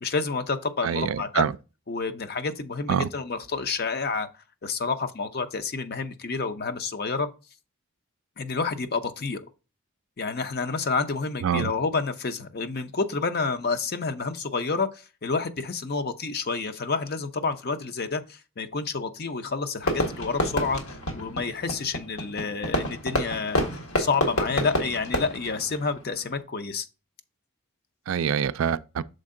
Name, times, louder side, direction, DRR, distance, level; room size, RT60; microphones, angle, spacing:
voice 1, 0.0-1.5 1.9-4.3 4.6-7.3 8.4-9.4 10.2-23.6 24.0-26.9, left 4 dB, 45° left, 0.6 m, -29 dB
voice 2, 0.8-1.5 2.9-3.1 11.4-11.7 28.1-29.0, right 8 dB, 70° right, 0.3 m, -25 dB
Fireworks, 19.8-26.4, equal, 75° left, 1.7 m, -29 dB
6.5 x 4.3 x 3.7 m
head